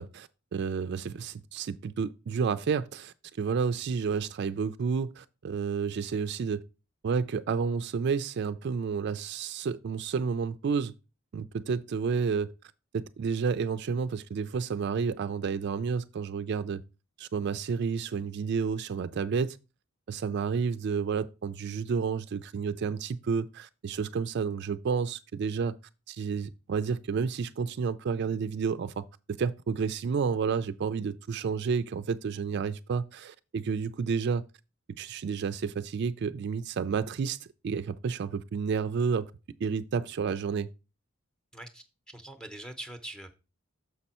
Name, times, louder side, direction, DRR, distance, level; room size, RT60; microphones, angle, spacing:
voice 1, 0.0-6.6 7.0-10.9 11.3-12.5 12.9-16.8 17.2-19.6 20.1-25.8 26.1-29.1 29.4-34.4 35.0-37.4 37.6-39.3 39.6-40.7, right 5 dB, 55° right, 0.3 m, -30 dB
voice 2, 41.5-43.4, right 1 dB, 5° left, 0.7 m, -43 dB
6.7 x 5.4 x 4.2 m
head